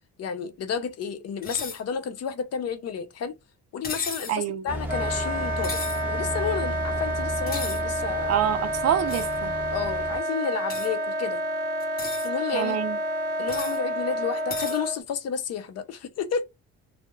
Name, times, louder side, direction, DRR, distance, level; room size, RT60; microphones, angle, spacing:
voice 1, 0.2-3.3 3.7-5.8 6.1-8.4 9.7-11.4 12.2-12.8 13.4-16.5, left 6 dB, 55° left, 0.6 m, -31 dB
sound 1, 1.4-1.8 3.8-4.4 5.6-6.0 7.5-7.8 9.1-9.3 10.7-10.9 11.8-12.3 13.5-13.8 14.5-14.8, left 4 dB, 30° left, 0.9 m, -35 dB
voice 2, 4.3-4.6 8.3-9.5 12.5-13.0, right 10 dB, 55° right, 0.4 m, -26 dB
sound 2, 4.7-10.2, right 1 dB, 5° right, 0.7 m, -34 dB
Wind instrument woodwind instrument, 4.9-15.0, right 1 dB, 30° right, 1.1 m, -29 dB
2.2 x 2.0 x 3.0 m
cardioid pair, 90°, 30 cm